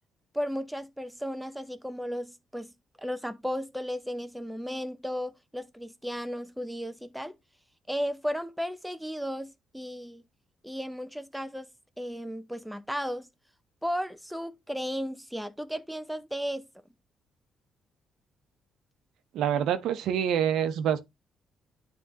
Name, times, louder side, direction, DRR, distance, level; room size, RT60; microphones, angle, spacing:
voice 1, 0.3-2.7 3.0-7.4 7.9-10.2 10.6-11.7 12.0-13.3 13.8-16.7, equal, ahead, 0.7 m, -34 dB
voice 2, 19.3-21.0, right 9 dB, 80° right, 0.8 m, -26 dB
9.9 x 3.5 x 2.8 m
cardioid pair, 90°, 0 cm